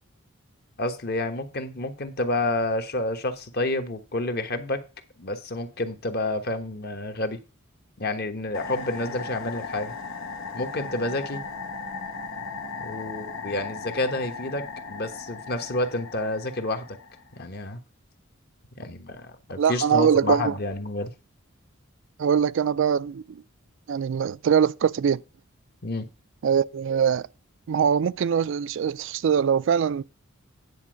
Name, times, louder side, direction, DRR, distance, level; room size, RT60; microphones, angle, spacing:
voice 1, 0.8-4.8 5.2-7.4 8.0-9.9 10.5-11.4 12.8-17.0 17.3-17.8 18.8-21.1 25.8-26.1, left 2 dB, 50° left, 1.2 m, -29 dB
sound 1, 8.5-17.4, left 4 dB, 90° left, 1.3 m, -37 dB
voice 2, 19.6-20.5 22.2-23.4 23.9-25.2 26.4-27.3 27.7-30.0, right 7 dB, 65° right, 0.4 m, -22 dB
9.9 x 4.3 x 6.2 m
head